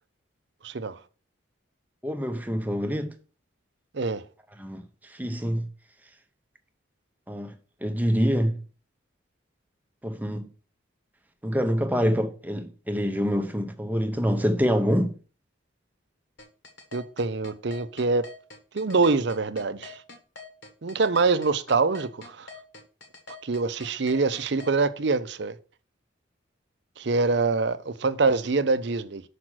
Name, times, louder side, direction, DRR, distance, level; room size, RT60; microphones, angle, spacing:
voice 1, 0.6-1.0 3.9-4.2 16.9-18.3 18.7-20.0 20.8-22.5 23.4-25.5 27.0-29.2, right 4 dB, 55° right, 0.6 m, -25 dB
voice 2, 2.0-3.1 4.6-5.7 7.3-7.5 7.8-8.6 10.0-10.5 11.4-15.1, equal, 10° right, 0.7 m, -26 dB
sound 1, 16.4-24.7, left 4 dB, 60° left, 1.5 m, -44 dB
6.1 x 5.0 x 6.2 m
head